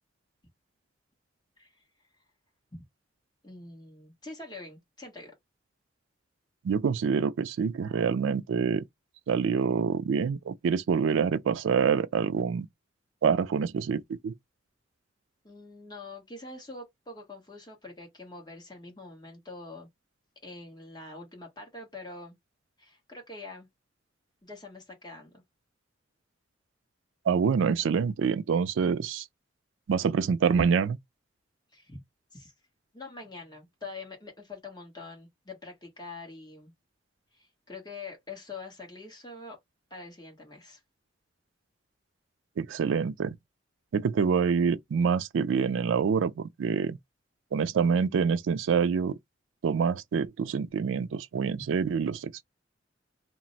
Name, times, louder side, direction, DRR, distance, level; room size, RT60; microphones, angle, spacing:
voice 1, 3.4-5.3 15.4-19.9 20.4-22.3 22.8-23.7 24.4-25.4 31.7-32.0 32.3-32.5 32.9-36.7 37.3-39.6 39.9-40.8 51.6-51.7, left 3 dB, 20° left, 1.1 m, -44 dB
voice 2, 6.6-8.8 9.3-12.7 13.2-14.3 27.3-29.2 29.9-31.0 42.6-43.4 43.9-47.0 47.5-49.1 49.6-52.4, right 6 dB, 90° right, 0.3 m, -26 dB
2.5 x 2.1 x 3.9 m
head